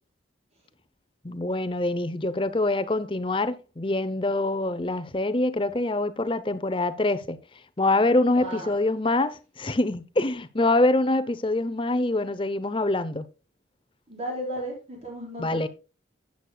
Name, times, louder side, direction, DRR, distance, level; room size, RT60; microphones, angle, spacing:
voice 1, 1.2-7.4 7.8-13.2 15.4-15.7, left 2 dB, 25° left, 0.7 m, -25 dB
voice 2, 8.4-8.8 14.1-15.7, equal, 35° right, 5.2 m, -34 dB
13.0 x 9.3 x 2.3 m
head